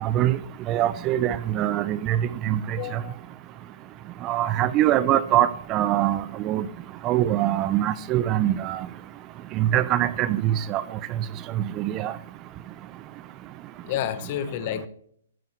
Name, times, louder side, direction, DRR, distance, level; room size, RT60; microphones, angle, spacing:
voice 1, 0.0-0.4 0.7-2.2 2.4-2.8 4.2-6.7 7.0-8.8 9.6-10.8 11.8-12.1, right 12 dB, 25° right, 0.5 m, -23 dB
voice 2, 2.8-3.2 13.8-14.9, left 10 dB, 40° left, 1.0 m, -30 dB
13.5 x 7.0 x 3.1 m
hypercardioid pair, 140°, 0 cm